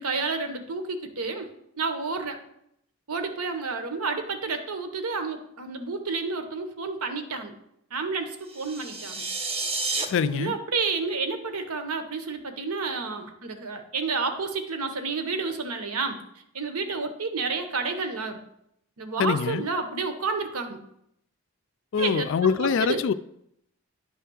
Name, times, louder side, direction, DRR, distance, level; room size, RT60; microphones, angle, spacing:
voice 1, 0.0-1.5 1.8-2.4 3.1-7.5 7.9-9.2 10.2-16.2 16.5-18.4 19.0-20.8 22.0-22.3 22.6-23.0, right 4 dB, 80° right, 0.9 m, -30 dB
sound 1, 8.5-10.0, right 3 dB, 25° right, 0.6 m, -30 dB
voice 2, 10.0-10.6 19.2-19.6 21.9-23.1, left 6 dB, 55° left, 0.3 m, -24 dB
9.6 x 3.4 x 6.1 m
head